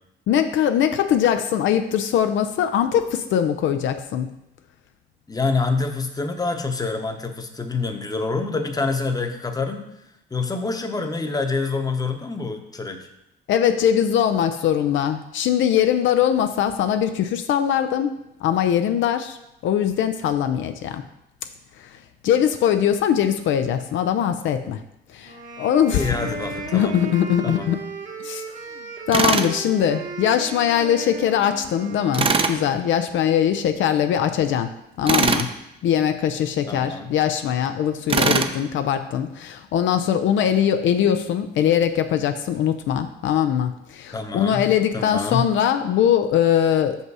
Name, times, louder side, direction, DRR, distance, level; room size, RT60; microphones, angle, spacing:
voice 1, 0.3-4.3 13.5-19.4 19.6-21.0 21.8-21.9 22.2-24.8 25.1-26.1 26.7-27.8 28.2-28.4 29.1-35.5 35.8-47.0, left 9 dB, 75° left, 8 dB, 0.5 m, -21 dB
voice 2, 5.3-9.9 10.3-13.1 25.9-27.0 27.4-27.7 36.7-37.1 44.1-45.4, left 4 dB, 20° left, 6 dB, 0.9 m, -26 dB
sound 1, 25.2-32.7, right 4 dB, 45° right, 1.1 m, -36 dB
Tools, 29.1-29.5 32.1-32.6 35.1-35.5 38.1-38.5, right 4 dB, 30° right, 0.5 m, -20 dB
6.0 x 5.5 x 4.7 m, 0.84 s
cardioid pair, 90°, 20 cm